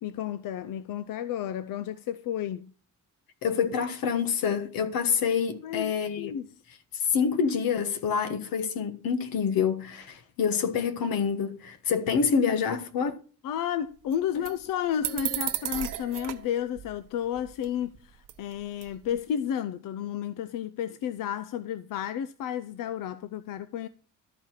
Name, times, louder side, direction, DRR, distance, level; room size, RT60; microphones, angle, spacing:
voice 1, 0.0-2.7 5.6-6.5 13.4-23.9, left 9 dB, 75° left, 0.5 m, -32 dB
voice 2, 3.4-6.3 6.9-13.1, left 6 dB, 90° left, 1.3 m, -27 dB
sound 1, 14.1-14.2 14.5-14.6 15.0-16.5 16.8-16.9 17.4-18.0 18.2-18.5 18.8-19.2, right 12 dB, 70° right, 0.9 m, -33 dB
12.5 x 4.8 x 5.7 m
cardioid pair, 145°, 34 cm